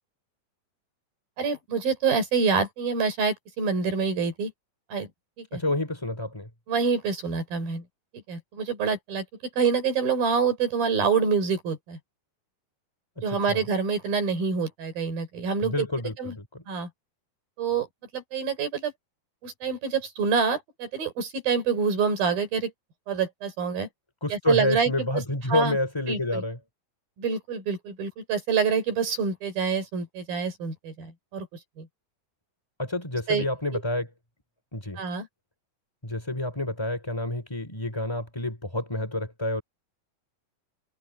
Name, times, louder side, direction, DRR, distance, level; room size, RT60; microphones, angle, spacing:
voice 1, 1.4-4.5 4.9-5.1 5.4-5.6 6.7-7.8 8.3-9.2 9.6-12.0 13.2-15.9 16.2-16.4 16.7-16.9 17.6-17.9 18.1-18.9 19.4-22.7 23.1-23.9 24.3-25.2 25.5-25.8 26.1-26.4 27.2-31.5 31.8-31.9 33.3-33.4 33.7-33.8 35.0-35.3, right 5 dB, 75° right, 6.6 m, -26 dB
voice 2, 5.5-6.5 13.5-13.6 15.6-16.6 24.2-26.6 32.8-34.1 34.7-35.0 36.0-39.6, left 1 dB, 10° left, 2.7 m, -28 dB
omnidirectional pair, 4.2 m